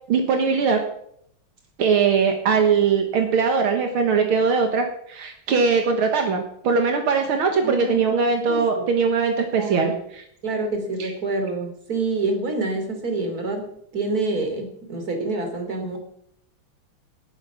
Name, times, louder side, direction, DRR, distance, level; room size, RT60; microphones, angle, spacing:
voice 1, 0.1-0.8 1.8-10.2 11.0-11.1, right 5 dB, 80° right, 4 dB, 2.3 m, -21 dB
voice 2, 7.6-8.0 8.5-8.8 9.6-10.0 10.4-13.7 13.9-16.0, right 3 dB, 45° right, 5 dB, 3.6 m, -27 dB
19.0 x 9.0 x 6.1 m, 0.70 s
omnidirectional pair, 2.3 m